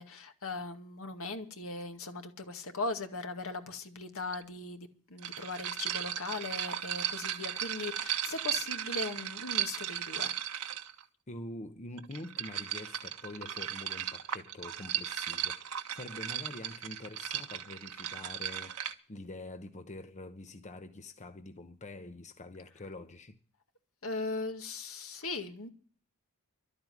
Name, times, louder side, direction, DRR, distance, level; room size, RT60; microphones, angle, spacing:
voice 1, 0.0-10.4 24.0-25.7, left 3 dB, 70° left, 2.1 m, -39 dB
sound 1, 4.3-4.4 5.2-11.0 12.0-18.9, right 10 dB, 80° right, 1.5 m, -36 dB
voice 2, 11.3-18.8 19.1-23.4, left 2 dB, 30° left, 1.0 m, -45 dB
12.5 x 8.6 x 9.4 m
head